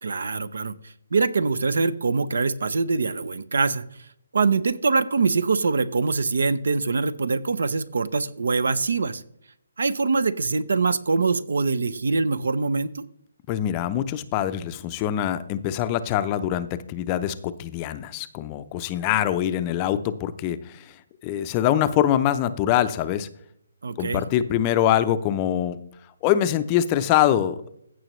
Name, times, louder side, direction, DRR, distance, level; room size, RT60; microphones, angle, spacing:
voice 1, 0.0-0.8 1.1-3.8 4.3-9.2 9.8-13.0 23.8-24.2, right 4 dB, 75° right, 17 dB, 0.6 m, -23 dB
voice 2, 13.5-20.6 21.2-23.3 24.0-25.8 26.2-27.7, left 11 dB, 25° left, 12 dB, 0.5 m, -24 dB
15.5 x 6.2 x 3.1 m, 0.74 s
hypercardioid pair, 160°, 0 cm